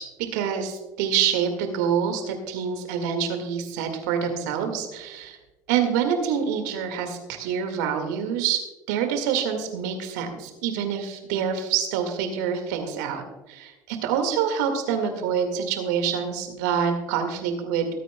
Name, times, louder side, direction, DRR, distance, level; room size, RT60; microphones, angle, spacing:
voice 1, 0.0-5.4 5.7-8.6 8.9-13.2 13.5-18.0, right 7 dB, 70° right, 6 dB, 1.9 m, -26 dB
22.0 x 9.2 x 2.2 m, 1.1 s
hypercardioid pair, 65°, 10 cm